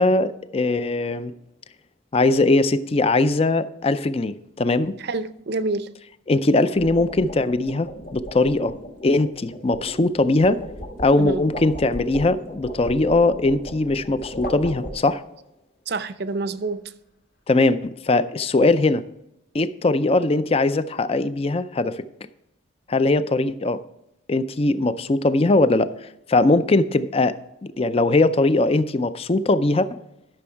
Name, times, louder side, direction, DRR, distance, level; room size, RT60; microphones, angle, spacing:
voice 1, 0.0-1.3 2.1-5.0 6.3-8.7 9.0-10.6 11.0-15.2 17.5-19.0 19.5-22.0 22.9-23.8 24.3-25.9 26.3-27.4 27.6-30.0, left 2 dB, 30° left, 13 dB, 0.4 m, -20 dB
sound 1, 1.1-1.4 6.5-15.4, equal, 45° left, 1.3 m, -37 dB
voice 2, 5.0-5.9 11.1-11.4 15.9-16.8, right 3 dB, 55° right, 12 dB, 0.6 m, -27 dB
12.0 x 6.1 x 4.5 m, 0.84 s
head